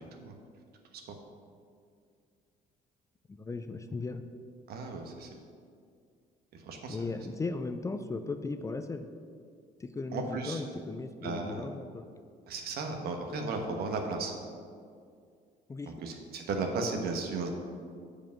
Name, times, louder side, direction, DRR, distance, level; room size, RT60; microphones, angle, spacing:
voice 1, 3.3-4.2 6.9-9.1 9.8-12.1 15.7-15.9, left 3 dB, 20° left, 8 dB, 0.4 m, -37 dB
voice 2, 4.7-5.3 6.7-7.0 10.1-10.6 11.2-11.6 12.5-14.3 15.9-17.5, right 3 dB, 70° right, 3 dB, 1.1 m, -35 dB
7.3 x 5.0 x 5.7 m, 2.2 s
cardioid pair, 110°, 17 cm